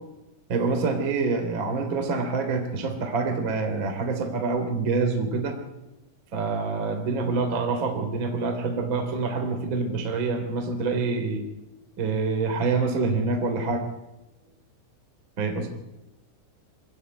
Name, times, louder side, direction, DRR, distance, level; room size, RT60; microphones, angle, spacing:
voice 1, 0.5-5.6 6.3-11.4 12.0-13.9 15.4-15.7, right 4 dB, 30° right, 4 dB, 3.2 m, -26 dB
26.0 x 16.5 x 9.6 m, 0.97 s
omnidirectional pair, 5.8 m